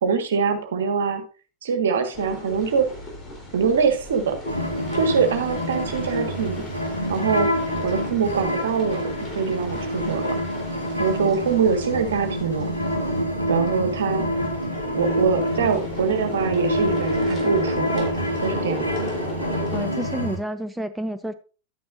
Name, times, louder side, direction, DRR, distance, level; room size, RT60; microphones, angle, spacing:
voice 1, 0.0-1.2 1.6-2.9 3.5-4.4 4.9-6.6 7.1-7.5 7.8-10.4 11.0-12.7 13.5-14.2 14.9-18.1 18.4-18.9, right 5 dB, 65° right, 6 dB, 1.6 m, -23 dB
sound 1, 2.1-19.9, left 1 dB, 25° left, 3.6 m, -37 dB
sound 2, 4.5-20.4, equal, 85° left, 2.0 m, -27 dB
voice 2, 19.7-21.3, right 1 dB, 5° right, 10 dB, 0.5 m, -29 dB
11.0 x 9.3 x 2.6 m, 0.35 s
figure-of-eight pair, 90°, 0 cm